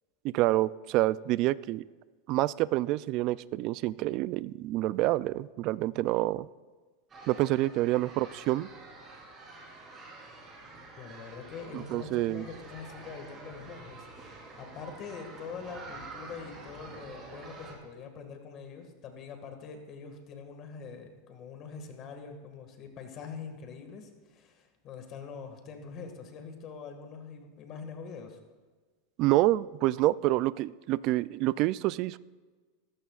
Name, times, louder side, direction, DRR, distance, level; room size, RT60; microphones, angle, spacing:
voice 1, 0.2-1.8 2.3-6.5 7.3-8.7 11.7-12.5 29.2-32.2, right 17 dB, 45° right, 19 dB, 0.3 m, -27 dB
sound 1, 7.1-17.7, right 3 dB, 25° right, 3.8 m, -48 dB
voice 2, 11.0-28.4, left 5 dB, 35° left, 5 dB, 1.8 m, -44 dB
18.5 x 14.0 x 2.4 m, 1.4 s
supercardioid pair, 145°, 0 cm